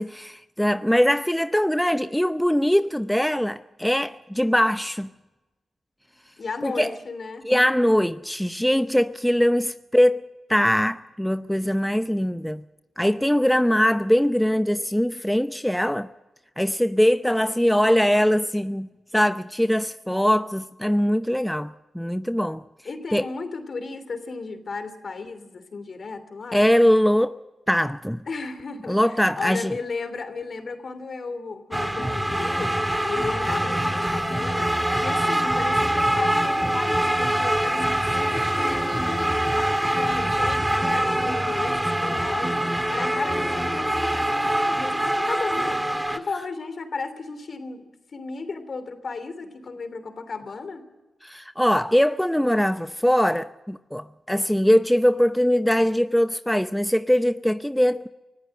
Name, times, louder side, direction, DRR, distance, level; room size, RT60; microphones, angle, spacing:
voice 1, 0.0-5.1 6.6-6.9 7.4-10.2 10.5-12.6 13.0-16.1 16.6-18.9 19.1-22.6 23.1-23.2 26.5-27.4 27.7-28.3 28.9-29.7 51.2-58.1, equal, 5° left, 0.7 m, -22 dB
voice 2, 6.4-7.5 22.8-26.6 28.3-32.7 33.0-34.7 35.0-42.6 42.9-45.8 46.1-50.8, left 4 dB, 55° left, 3.0 m, -34 dB
sound 1, 31.7-46.2, right 1 dB, 10° right, 1.8 m, -24 dB
24.5 x 14.5 x 7.7 m
supercardioid pair, 45°, 0 cm